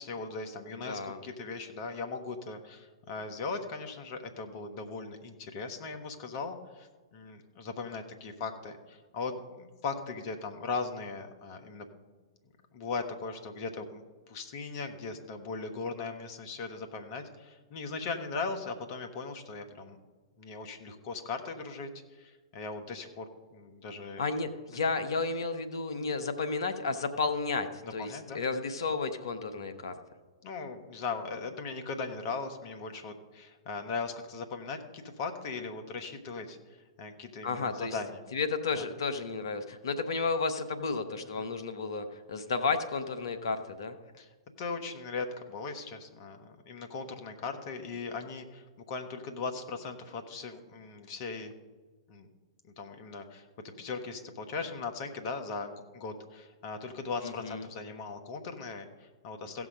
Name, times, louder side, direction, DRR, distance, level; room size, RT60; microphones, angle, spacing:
voice 1, 0.0-11.9 12.7-20.0 20.4-23.2 23.5-24.3 27.8-28.4 30.4-38.2 38.7-38.9 41.4-41.5 44.2-44.3 44.6-51.5 52.1-52.3 52.6-59.7, left 4 dB, 45° left, 6 dB, 1.5 m, -39 dB
voice 2, 0.9-1.2 24.2-27.7 27.9-29.9 37.4-37.9 38.3-43.9 57.2-57.6, left 4 dB, 65° left, 8 dB, 1.1 m, -32 dB
16.0 x 6.2 x 5.1 m, 1.4 s
figure-of-eight pair, 110°, 3 cm